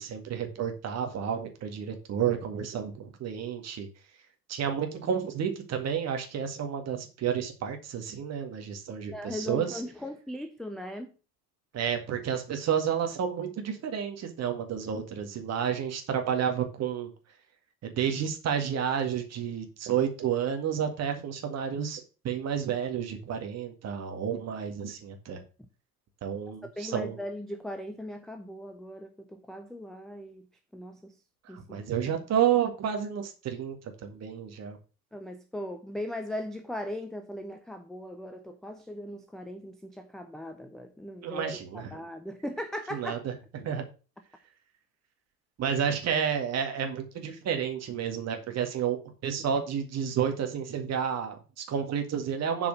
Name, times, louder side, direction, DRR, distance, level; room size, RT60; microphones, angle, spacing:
voice 1, 0.0-3.9 4.5-9.8 11.7-17.1 17.8-25.4 26.2-27.2 31.5-33.8 34.0-34.8 41.2-41.9 42.9-43.8 45.6-49.0 49.2-52.7, right 8 dB, 30° right, 1.9 m, -30 dB
voice 2, 9.1-11.1 26.6-30.4 30.7-31.1 31.5-31.8 32.0-32.2 35.1-43.2, left 1 dB, ahead, 0.5 m, -39 dB
7.5 x 4.8 x 6.2 m
figure-of-eight pair, 75°, 48 cm